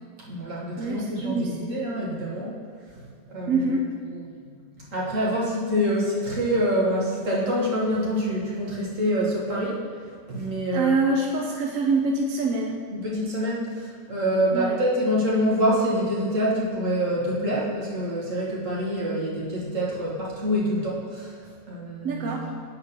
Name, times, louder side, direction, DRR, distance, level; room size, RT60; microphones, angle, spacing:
voice 1, 0.2-2.6 2.9-9.8 10.3-11.0 12.9-22.6, equal, 45° right, -5 dB, 1.9 m, -26 dB
voice 2, 0.8-1.8 3.5-3.8 10.7-12.8 14.5-14.7 22.0-22.5, right 3 dB, 65° right, 1 dB, 0.8 m, -25 dB
8.6 x 3.9 x 6.5 m, 2.1 s
omnidirectional pair, 1.9 m